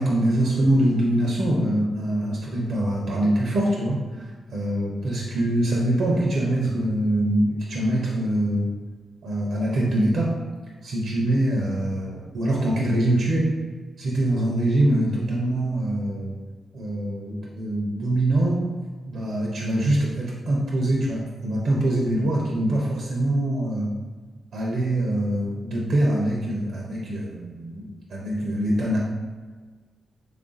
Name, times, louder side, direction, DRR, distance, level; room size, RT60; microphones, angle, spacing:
voice 1, 0.0-4.0 4.5-8.7 9.2-10.4 10.8-13.5 14.0-16.3 16.7-18.6 19.1-23.9 24.5-29.0, right 1 dB, 70° right, -3 dB, 0.6 m, -24 dB
3.3 x 2.4 x 3.8 m, 1.4 s
cardioid pair, 65°, 0 cm